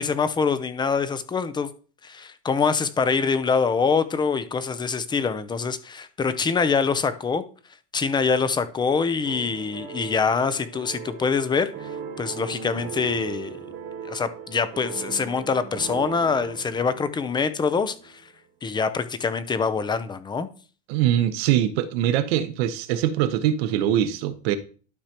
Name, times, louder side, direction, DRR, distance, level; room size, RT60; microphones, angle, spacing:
voice 1, 0.0-1.7 2.0-7.4 7.9-11.9 12.2-13.7 14.0-18.2 18.6-20.5, left 5 dB, 15° left, 0.6 m, -24 dB
sound 1, 9.2-18.3, right 7 dB, 40° right, 1.2 m, -38 dB
voice 2, 20.9-24.6, right 11 dB, 75° right, 1.0 m, -23 dB
12.0 x 4.9 x 2.9 m
supercardioid pair, 135°, 31 cm